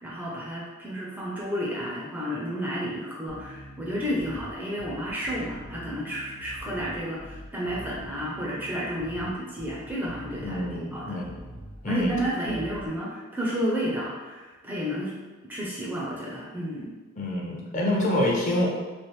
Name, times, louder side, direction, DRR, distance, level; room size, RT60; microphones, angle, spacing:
voice 1, 0.0-11.2 11.9-15.2 15.5-16.9, equal, 10° right, -5 dB, 0.4 m, -31 dB
Bass guitar, 3.3-12.9, equal, 85° right, 0.8 m, -44 dB
voice 2, 10.4-11.4 11.8-12.1 17.2-18.7, left 1 dB, 35° left, -3 dB, 0.6 m, -26 dB
3.1 x 2.4 x 3.0 m, 1.2 s
head